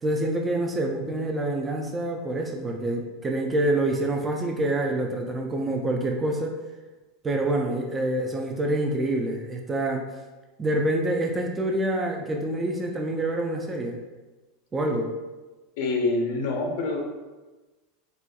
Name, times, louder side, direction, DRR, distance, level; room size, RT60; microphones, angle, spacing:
voice 1, 0.0-6.6 7.2-10.0 10.6-14.0 14.7-15.1, right 1 dB, 15° right, 2 dB, 0.3 m, -26 dB
voice 2, 15.8-17.0, left 3 dB, 70° left, 2 dB, 0.6 m, -26 dB
4.0 x 2.3 x 2.3 m, 1.2 s
supercardioid pair, 145°, 0 cm